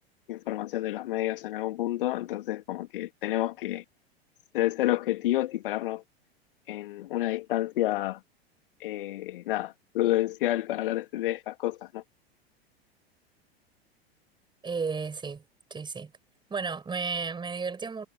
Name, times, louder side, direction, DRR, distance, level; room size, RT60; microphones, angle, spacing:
voice 1, 0.3-3.8 4.5-6.0 6.7-8.2 8.8-12.0, left 15 dB, 55° left, 2.3 m, -29 dB
voice 2, 14.6-15.4 15.7-16.1 16.5-18.1, right 5 dB, 15° right, 5.2 m, -33 dB
figure-of-eight pair, 90°, 31 cm